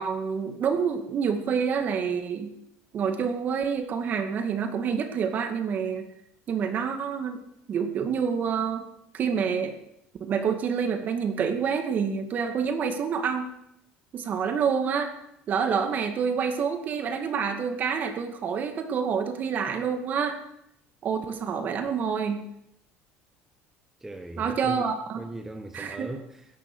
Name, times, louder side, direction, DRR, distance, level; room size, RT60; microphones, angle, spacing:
voice 1, 0.0-2.5 2.9-6.1 6.5-7.4 7.7-8.8 9.1-9.8 10.2-13.5 14.1-15.1 15.5-20.4 21.0-22.4 24.4-25.2 25.7-26.1, right 6 dB, 40° right, 2.2 m, -27 dB
voice 2, 24.0-24.8 25.2-26.5, right 1 dB, 10° right, 1.2 m, -38 dB
17.0 x 11.0 x 6.3 m
cardioid pair, 130°, 4 cm